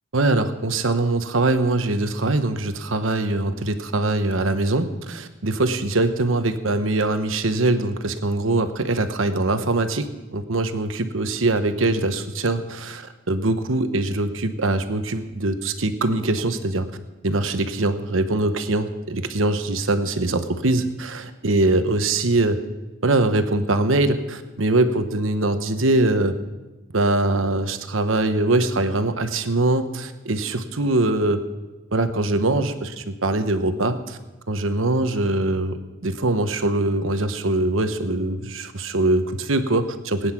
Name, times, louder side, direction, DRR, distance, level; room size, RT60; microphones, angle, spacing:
voice 1, 0.1-16.9 17.2-22.6 23.0-26.4 26.9-31.4 31.9-34.2 34.5-40.3, right 2 dB, 85° right, 9 dB, 1.1 m, -22 dB
19.5 x 9.7 x 6.0 m, 1.1 s
head